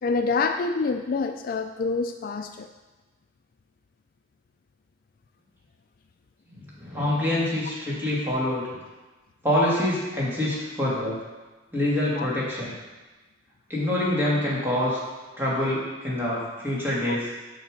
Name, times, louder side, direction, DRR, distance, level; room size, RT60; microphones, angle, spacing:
voice 1, 0.0-2.7 12.2-12.3 17.1-17.2, left 4 dB, 50° left, 6 dB, 0.3 m, -26 dB
voice 2, 6.5-8.8 9.4-11.2 11.7-12.7 13.7-15.0 15.4-17.3, left 1 dB, 10° right, -7 dB, 2.3 m, -26 dB
6.8 x 5.6 x 5.2 m, 1.2 s
head